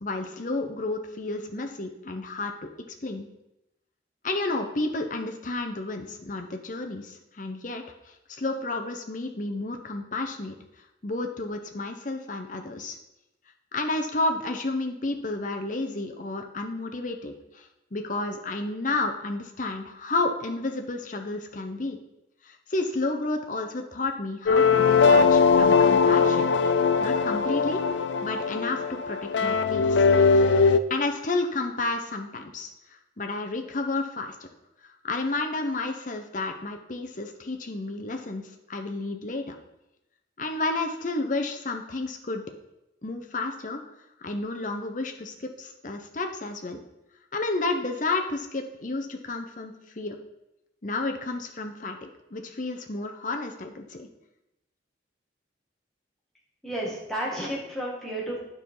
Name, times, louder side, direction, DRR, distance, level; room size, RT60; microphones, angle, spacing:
voice 1, 0.0-2.5 3.0-3.3 4.2-7.8 8.3-10.6 11.0-13.0 13.7-22.0 22.4-26.5 27.0-27.8 28.2-30.0 30.9-32.7 33.2-34.4 35.0-39.6 40.4-42.4 43.0-43.8 44.2-46.8 47.3-50.1 50.8-54.1, left 2 dB, 40° left, 4 dB, 0.8 m, -31 dB
sound 1, 24.5-30.8, left 5 dB, 70° left, 0.4 m, -20 dB
voice 2, 56.6-58.4, right 1 dB, ahead, -5 dB, 2.0 m, -32 dB
9.3 x 5.6 x 4.7 m, 0.90 s
head